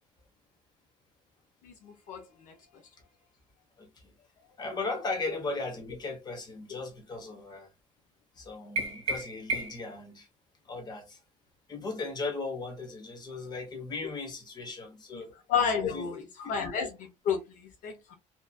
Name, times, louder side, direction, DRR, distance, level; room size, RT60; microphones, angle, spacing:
voice 1, 1.6-2.5 15.1-15.2 15.5-18.2, left 6 dB, 75° left, 0.8 m, -32 dB
voice 2, 3.8-4.1 4.6-7.7 8.4-10.3 10.7-11.2 11.7-15.3 15.9-16.5, left 3 dB, 30° left, 1.0 m, -37 dB
sound 1, 8.8-10.0, right 2 dB, 50° right, 1.1 m, -33 dB
3.0 x 2.5 x 2.2 m
cardioid pair, 145°, 13 cm